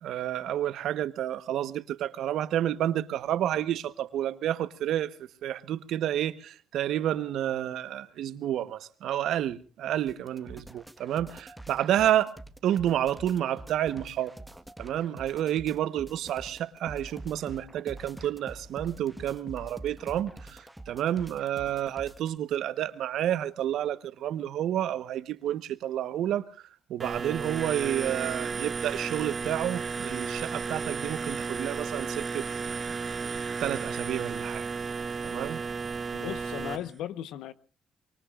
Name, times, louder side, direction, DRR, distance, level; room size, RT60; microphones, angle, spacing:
voice 1, 0.0-12.3 12.6-14.3 14.8-26.4 26.9-32.5 33.6-34.6 35.2-35.6, right 11 dB, 80° right, 1.1 m, -30 dB
sound 1, 10.1-22.4, right 1 dB, 5° right, 1.4 m, -46 dB
sound 2, 27.0-36.8, right 5 dB, 35° right, 1.8 m, -33 dB
voice 2, 36.1-37.5, left 11 dB, 90° left, 1.0 m, -36 dB
24.5 x 23.5 x 2.5 m
cardioid pair, 90°, 0 cm